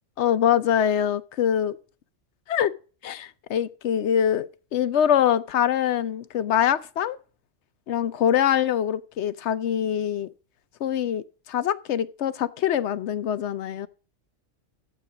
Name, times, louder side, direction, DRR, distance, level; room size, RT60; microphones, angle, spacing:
voice 1, 0.2-1.8 2.5-2.7 3.0-4.5 4.7-7.2 7.9-10.3 10.8-13.9, left 9 dB, 65° left, 1.0 m, -24 dB
12.0 x 8.3 x 5.0 m
omnidirectional pair, 1.3 m